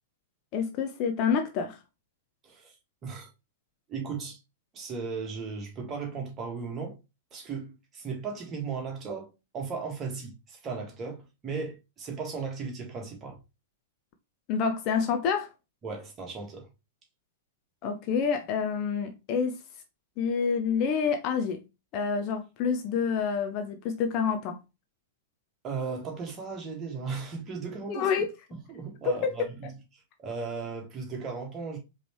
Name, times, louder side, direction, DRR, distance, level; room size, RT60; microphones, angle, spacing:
voice 1, 0.5-1.8 14.5-15.5 17.8-19.6 20.2-21.6 21.9-24.6 27.9-28.3 29.0-29.3, left 6 dB, 35° left, 0.7 m, -28 dB
voice 2, 3.9-4.4 4.7-7.0 7.3-13.4 15.8-16.7 25.6-28.1 28.7-29.7 30.2-31.8, right 5 dB, 25° right, 1.7 m, -36 dB
5.0 x 3.3 x 3.1 m
figure-of-eight pair, 100°, 0 cm